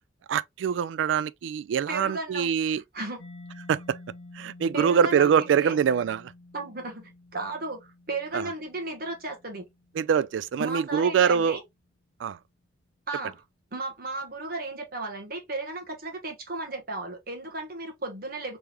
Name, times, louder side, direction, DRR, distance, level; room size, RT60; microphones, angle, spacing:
voice 1, 0.3-2.8 3.7-4.0 4.3-6.3 8.3-8.5 10.0-11.6 12.2-12.4, right 7 dB, 85° right, 0.3 m, -24 dB
voice 2, 1.9-3.2 4.7-5.7 6.5-9.6 10.6-11.6 13.1-13.4 13.7-18.6, right 2 dB, 50° right, 1.3 m, -35 dB
Mallet percussion, 3.2-10.7, left 2 dB, 85° left, 0.7 m, -50 dB
3.5 x 3.4 x 2.9 m
head